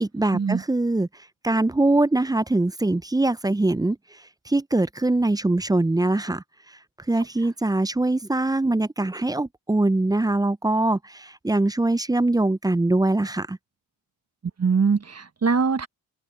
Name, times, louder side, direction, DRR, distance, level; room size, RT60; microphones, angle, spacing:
voice 1, 0.0-1.1 1.4-4.0 4.5-6.4 7.1-13.6, right 2 dB, 10° right, 0.5 m, -22 dB
voice 2, 14.6-15.9, right 5 dB, 35° right, 1.4 m, -22 dB
cardioid pair, 55°, 43 cm